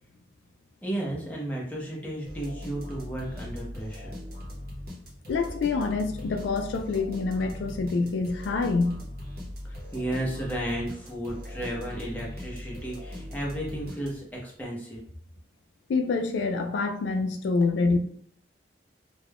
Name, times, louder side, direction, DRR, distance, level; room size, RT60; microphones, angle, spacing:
voice 1, 0.8-4.2 9.6-15.0, right 1 dB, 10° left, -4 dB, 0.7 m, -33 dB
sound 1, 2.2-14.5, left 1 dB, 55° right, 0.8 m, -40 dB
voice 2, 5.3-9.0 15.9-18.0, left 4 dB, 80° left, 5 dB, 0.3 m, -26 dB
2.4 x 2.2 x 3.3 m, 0.62 s
head